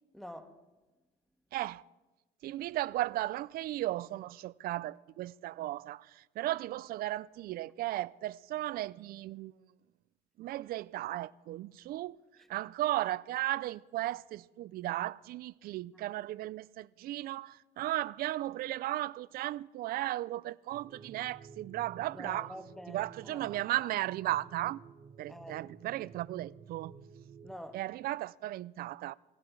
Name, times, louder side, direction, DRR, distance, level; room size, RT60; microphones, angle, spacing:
voice 1, 0.1-0.6 22.1-23.6 25.3-25.6 27.4-27.8, equal, ahead, 1.4 m, -47 dB
voice 2, 1.5-1.8 2.4-9.5 10.4-12.2 12.5-22.6 22.9-24.8 25.2-26.9 27.7-29.1, right 15 dB, 60° right, 0.4 m, -35 dB
sound 1, 20.7-27.5, right 6 dB, 40° right, 1.4 m, -53 dB
18.5 x 16.0 x 4.7 m
cardioid pair, 110°, 17 cm